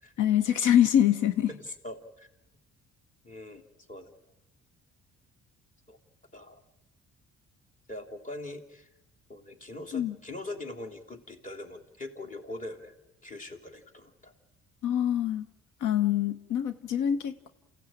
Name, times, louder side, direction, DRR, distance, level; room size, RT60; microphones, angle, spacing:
voice 1, 0.2-1.5 9.9-10.1 14.8-15.4 15.8-17.5, left 10 dB, 80° left, 12 dB, 1.1 m, -25 dB
voice 2, 1.5-2.3 3.2-4.1 5.9-6.0 6.3-6.6 7.9-8.9 9.3-12.9 13.2-14.3, left 1 dB, 25° left, 2 dB, 3.4 m, -42 dB
28.0 x 16.0 x 9.1 m, 0.97 s
cardioid pair, 90°, 30 cm